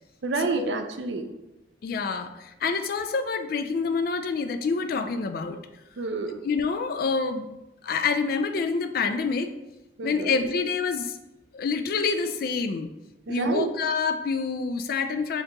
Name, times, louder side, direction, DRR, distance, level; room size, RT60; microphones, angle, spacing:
voice 1, 0.2-1.3 6.0-6.4 10.0-10.3 13.3-13.7, right 3 dB, 75° right, 6 dB, 0.5 m, -29 dB
voice 2, 1.8-5.6 6.4-7.5 7.8-9.6 10.0-11.2 11.5-12.9 13.3-15.4, left 4 dB, 55° left, 9 dB, 0.3 m, -27 dB
4.3 x 2.9 x 3.8 m, 0.95 s
head